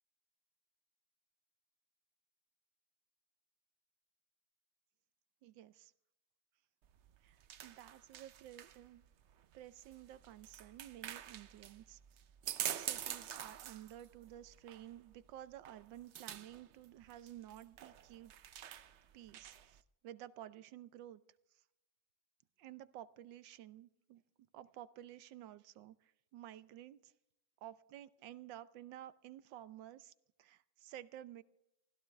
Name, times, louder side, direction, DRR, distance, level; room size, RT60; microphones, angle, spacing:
voice 1, 5.4-5.9 7.2-7.4 7.6-9.0 9.5-12.0 12.8-18.3 19.1-21.2 22.6-24.2 24.5-27.1 27.6-30.1 30.4-31.4, right 12 dB, 85° right, 15 dB, 1.4 m, -53 dB
sound 1, 6.8-19.8, right 10 dB, 65° right, 0.6 m, -47 dB
24.0 x 15.5 x 3.3 m, 0.86 s
omnidirectional pair, 1.9 m